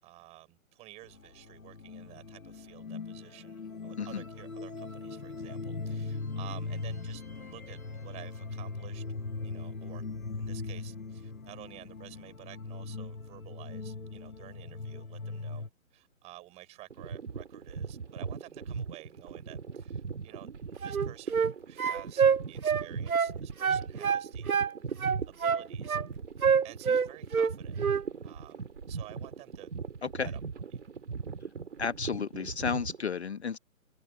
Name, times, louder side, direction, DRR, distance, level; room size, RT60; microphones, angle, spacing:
voice 1, 0.0-9.0 9.4-10.0 10.4-24.6 25.3-26.0 26.6-27.8 28.2-29.7 30.2-30.4 30.7-30.8, right 18 dB, 15° right, 5.7 m, -51 dB
sound 1, 1.0-15.7, left 3 dB, 75° left, 1.6 m, -40 dB
sound 2, 16.9-33.0, right 5 dB, 55° right, 4.1 m, -39 dB
sound 3, 20.8-21.5 21.8-23.3 23.6-24.7 25.0-26.1 26.4-27.5 27.8-28.0, right 6 dB, 85° right, 0.7 m, -26 dB
voice 2, 31.8-33.6, left 6 dB, 50° left, 1.4 m, -32 dB
figure-of-eight pair, 140°, 42 cm